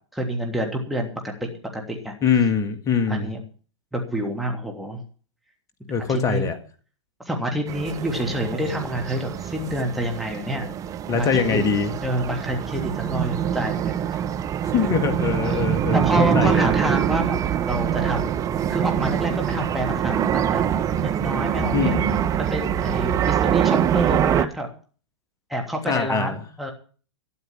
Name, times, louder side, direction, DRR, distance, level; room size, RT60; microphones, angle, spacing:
voice 1, 0.1-1.1 1.4-2.1 3.1-3.4 3.9-5.0 6.1-6.5 7.2-10.7 11.1-11.7 12.0-14.1 15.4-17.4 17.6-18.4 18.7-20.6 21.0-24.7 25.5-26.7, right 1 dB, ahead, 0 dB, 3.0 m, -28 dB
voice 2, 2.2-3.3 5.9-6.6 11.1-11.9 14.7-16.7 21.7-22.2 25.9-26.4, left 6 dB, 20° left, 8 dB, 2.0 m, -23 dB
sound 1, 7.7-24.5, right 9 dB, 20° right, 0.9 m, -24 dB
13.0 x 10.5 x 7.3 m, 0.40 s
figure-of-eight pair, 110°, 15 cm